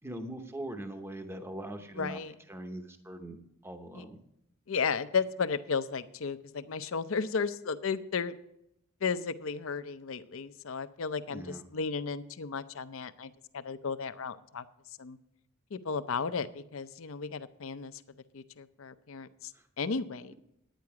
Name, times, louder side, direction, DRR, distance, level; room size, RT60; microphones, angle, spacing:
voice 1, 0.0-2.2 2.5-3.4 3.6-4.2 11.3-11.6 19.5-19.6, right 1 dB, 10° right, 6 dB, 0.8 m, -41 dB
voice 2, 2.0-2.3 3.9-4.0 4.7-8.3 9.0-14.6 15.0-15.2 15.7-18.0 18.3-19.5 19.8-20.3, left 5 dB, 65° left, 12 dB, 0.6 m, -34 dB
10.5 x 9.5 x 4.8 m, 0.77 s
head